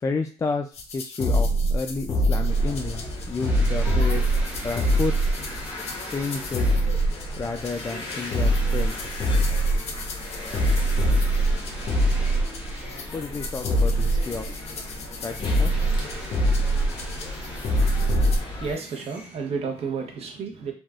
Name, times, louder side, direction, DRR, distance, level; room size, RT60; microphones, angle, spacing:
voice 1, 0.0-4.2 4.6-5.1 6.1-6.7 7.4-9.1 13.1-14.5 15.2-15.7, left 4 dB, 25° left, 4 dB, 0.3 m, -31 dB
sound 1, 0.8-18.4, equal, 55° left, 0.7 m, -24 dB
sound 2, 2.5-18.7, left 1 dB, 40° left, 1.1 m, -37 dB
sound 3, 3.4-13.4 13.8-19.8, equal, 10° right, 0.8 m, -42 dB
voice 2, 18.5-20.7, right 5 dB, 55° right, 2 dB, 0.8 m, -31 dB
3.3 x 2.4 x 2.4 m, 0.39 s
cardioid pair, 95°, 13 cm